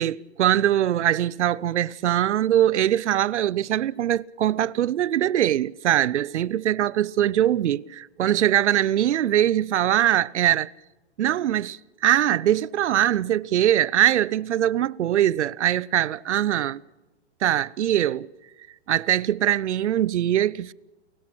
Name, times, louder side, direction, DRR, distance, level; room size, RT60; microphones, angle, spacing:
voice 1, 0.0-10.7 11.2-16.8 17.4-18.3 18.9-20.7, right 11 dB, 80° right, 0.7 m, -22 dB
29.5 x 17.0 x 6.0 m
hypercardioid pair, 165°, 34 cm